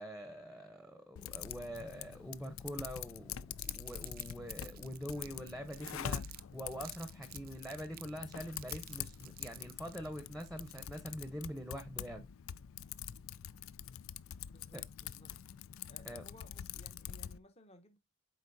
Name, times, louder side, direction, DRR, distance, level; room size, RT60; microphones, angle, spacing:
voice 1, 0.0-12.3 14.7-14.8 16.0-16.2, equal, ahead, 0.8 m, -44 dB
Typing, 1.2-17.4, left 9 dB, 70° left, 0.4 m, -45 dB
Crumpling crinkling, 3.6-6.4 6.7-11.1, right 15 dB, 45° right, 0.4 m, -53 dB
voice 2, 5.1-5.4 14.5-15.3 15.9-18.0, left 1 dB, 30° left, 0.9 m, -60 dB
8.1 x 5.2 x 2.7 m
head